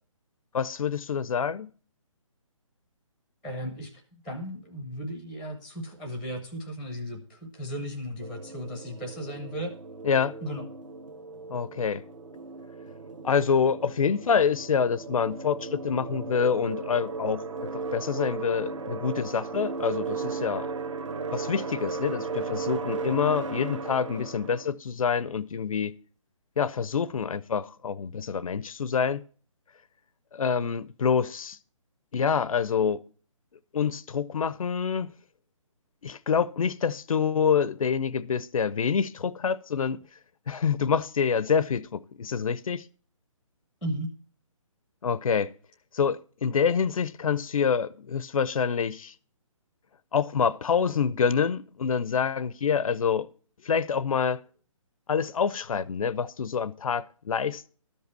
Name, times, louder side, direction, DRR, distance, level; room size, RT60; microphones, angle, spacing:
voice 1, 0.5-1.7 10.0-10.3 11.5-12.0 13.2-20.7 21.3-26.0 26.6-29.2 30.3-31.6 32.1-33.0 33.7-35.1 36.0-40.0 40.5-42.8 45.0-45.5 45.9-49.1 50.1-53.3 53.6-54.4 55.1-57.7, left 6 dB, 80° left, 0.6 m, -26 dB
voice 2, 3.4-9.8 10.4-10.7 43.8-44.1, equal, 5° right, 0.6 m, -36 dB
sound 1, 8.2-24.7, right 4 dB, 65° right, 1.3 m, -36 dB
13.0 x 5.4 x 6.7 m
hypercardioid pair, 170°, 17 cm